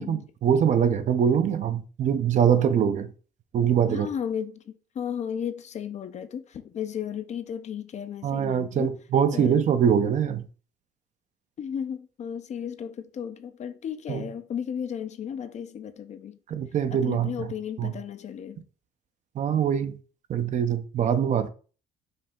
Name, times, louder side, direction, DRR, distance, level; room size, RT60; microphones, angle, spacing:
voice 1, 0.0-3.1 3.5-4.1 8.2-10.4 14.1-14.2 16.5-17.3 17.8-17.9 19.4-20.0 20.3-21.5, right 8 dB, 45° right, 0.5 m, -23 dB
voice 2, 3.9-8.9 9.3-9.7 11.6-16.4 16.9-18.7, left 8 dB, 45° left, 0.5 m, -34 dB
5.3 x 2.8 x 3.5 m
cardioid pair, 110°, 17 cm